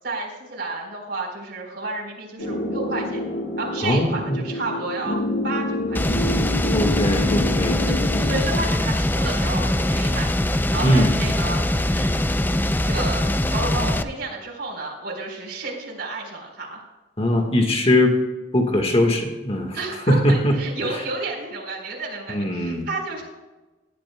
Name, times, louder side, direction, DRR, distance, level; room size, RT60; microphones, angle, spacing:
voice 1, 0.0-3.2 3.6-6.0 7.8-10.3 10.7-11.6 11.9-12.3 12.8-13.2 13.5-16.8 19.7-23.2, right 2 dB, 65° right, 0 dB, 4.4 m, -31 dB
sound 1, 2.4-8.4, left 1 dB, 90° left, 1.9 m, -27 dB
voice 2, 3.8-4.4 6.7-7.8 10.8-11.1 17.2-18.2 18.5-19.8 20.1-20.6 22.3-22.9, left 1 dB, 35° left, 3 dB, 1.6 m, -20 dB
sound 2, 5.9-14.0, left 1 dB, 10° left, 0.5 m, -22 dB
19.5 x 12.0 x 2.3 m, 1.2 s
head